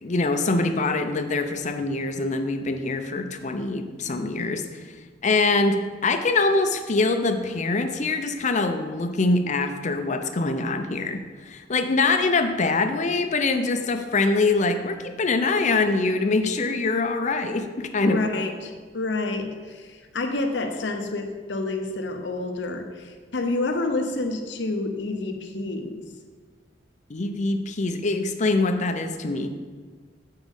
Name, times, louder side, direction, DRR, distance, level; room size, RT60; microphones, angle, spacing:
voice 1, 0.0-4.6 5.2-18.2 27.1-29.5, left 3 dB, 40° left, 7 dB, 0.6 m, -24 dB
voice 2, 18.0-26.0, left 2 dB, 70° left, 6 dB, 0.8 m, -28 dB
7.2 x 4.6 x 5.3 m, 1.5 s
head